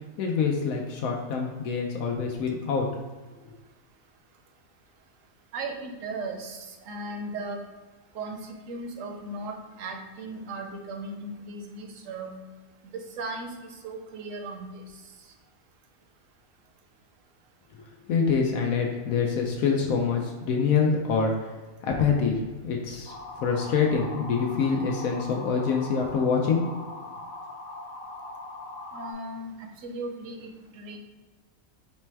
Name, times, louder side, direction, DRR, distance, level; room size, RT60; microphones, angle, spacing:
voice 1, 0.2-2.9 17.7-21.5 21.8-22.4 22.6-26.6, left 5 dB, 85° left, 1 dB, 1.0 m, -26 dB
voice 2, 5.5-7.6 8.1-12.4 12.8-13.5 13.8-14.8 28.9-29.5 29.8-31.0, right 2 dB, 70° right, 3 dB, 1.0 m, -37 dB
sound 1, 23.1-29.1, left 2 dB, 35° left, 0.8 m, -40 dB
4.1 x 2.2 x 4.5 m, 1.3 s
omnidirectional pair, 1.5 m